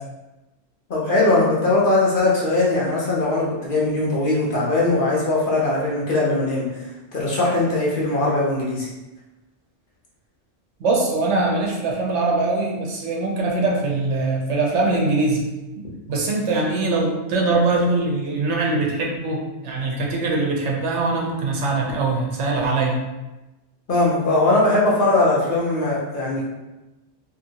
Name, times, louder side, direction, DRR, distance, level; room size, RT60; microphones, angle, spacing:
voice 1, 0.9-8.9 23.9-26.5, left 2 dB, 55° left, -5 dB, 0.7 m, -20 dB
voice 2, 10.8-15.4 15.8-23.0, right 3 dB, 75° right, -1 dB, 0.9 m, -22 dB
2.8 x 2.6 x 2.7 m, 1.0 s
omnidirectional pair, 1.2 m